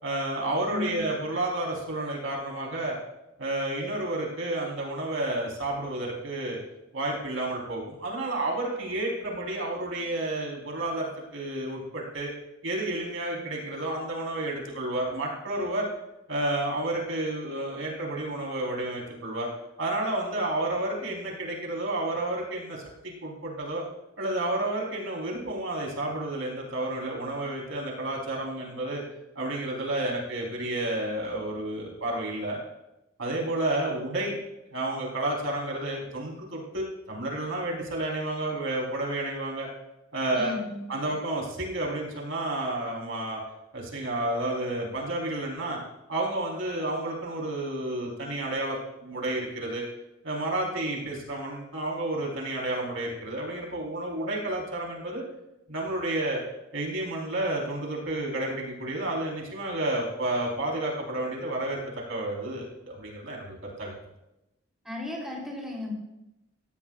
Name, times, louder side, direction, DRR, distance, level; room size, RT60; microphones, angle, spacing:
voice 1, 0.0-3.0 3.4-6.6 6.9-12.3 12.6-15.9 16.3-19.5 19.8-23.8 24.2-29.0 29.3-32.6 33.2-34.4 34.7-39.7 40.1-40.5 40.9-43.4 43.7-45.8 46.1-49.9 50.2-55.2 55.7-56.4 56.7-61.8 62.1-63.9, right 1 dB, 75° right, -2 dB, 4.3 m, -31 dB
voice 2, 0.7-1.0 40.3-40.9 64.8-65.9, left 2 dB, ahead, -3 dB, 3.6 m, -35 dB
17.5 x 16.5 x 2.5 m, 0.91 s
head